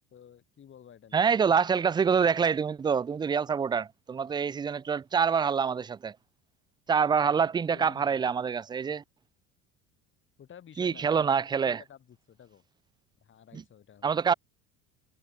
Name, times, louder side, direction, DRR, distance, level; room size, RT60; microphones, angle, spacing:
voice 1, 0.1-1.3 7.2-8.3 10.4-12.6 13.2-14.2, left 9 dB, 35° left, 2.7 m, -53 dB
voice 2, 1.1-6.2 6.9-9.0 10.8-11.8 13.5-13.6 14.0-14.3, right 6 dB, 15° right, 0.3 m, -26 dB
supercardioid pair, 100°, 32 cm